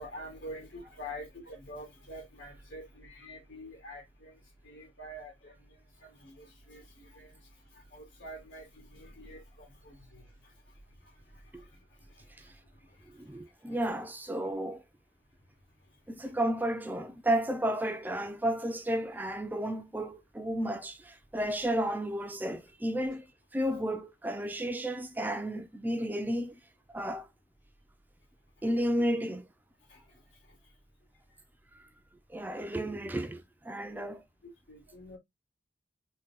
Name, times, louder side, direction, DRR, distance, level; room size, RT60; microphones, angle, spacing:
voice 1, 0.0-13.8 15.8-16.0 28.6-28.7 29.9-30.6 31.3-31.4 33.9-35.2, equal, 80° left, 2.1 m, -48 dB
voice 2, 13.1-14.8 16.1-23.3 23.5-26.6 26.9-27.3 28.6-29.5 32.3-34.2, right 1 dB, 10° right, 0.4 m, -32 dB
3.7 x 2.2 x 4.0 m
head